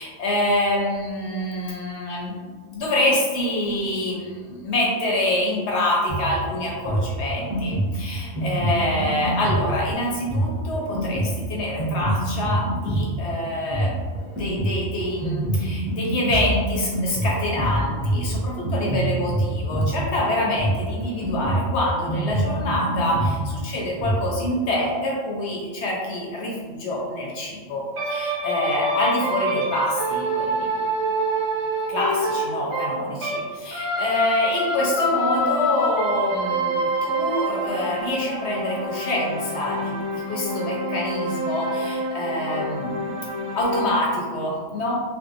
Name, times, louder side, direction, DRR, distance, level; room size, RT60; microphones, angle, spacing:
voice 1, 0.0-2.4 2.7-14.0 14.4-30.7 31.9-44.9, left 1 dB, 70° left, -3 dB, 0.9 m, -26 dB
Drum kit, 6.1-24.3, right 1 dB, 5° right, 0.7 m, -26 dB
sound 1, 28.0-33.4 33.7-44.0, right 1 dB, 70° right, 1.1 m, -26 dB
2.6 x 2.1 x 2.4 m, 1.5 s
omnidirectional pair, 1.2 m